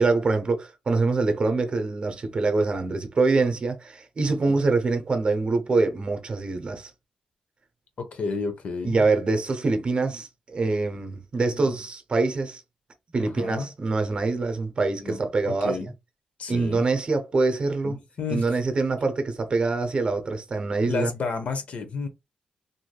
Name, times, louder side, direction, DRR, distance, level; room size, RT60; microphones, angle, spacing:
voice 1, 0.0-6.9 8.8-12.6 13.1-15.8 16.5-18.0 18.3-21.1, right 3 dB, 40° right, 0.6 m, -24 dB
voice 2, 4.3-4.6 8.0-9.0 11.5-11.8 13.2-13.7 15.0-15.2 15.5-15.9 16.4-16.8 17.8-18.4 20.8-22.1, left 4 dB, 60° left, 0.7 m, -32 dB
3.2 x 2.6 x 2.2 m
wide cardioid pair, 110°, 3 cm